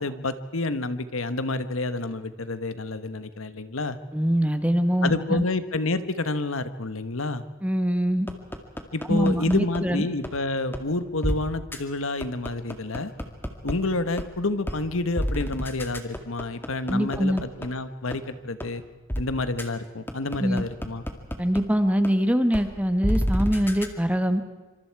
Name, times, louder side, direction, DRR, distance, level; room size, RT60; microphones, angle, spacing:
voice 1, 0.0-4.0 5.0-7.4 8.9-13.1 13.6-18.8 19.2-21.0, left 2 dB, 75° left, 11 dB, 1.3 m, -29 dB
voice 2, 4.1-5.4 7.6-8.3 9.1-10.0 16.9-17.4 20.4-20.6 21.4-24.4, equal, 5° right, 8 dB, 1.4 m, -23 dB
sound 1, 8.3-9.8 10.2-10.3 10.7-10.8 11.2-11.4 11.7-11.8 12.2-13.7 14.2-14.3 14.7-14.8 15.2-17.7 18.1-18.2 18.6-18.7 19.1-19.2 19.6-19.7 20.1-21.6 22.0-22.1 22.5-22.6 23.0-23.9, equal, 10° left, 1.9 m, -28 dB
26.5 x 26.0 x 4.7 m, 1.2 s
head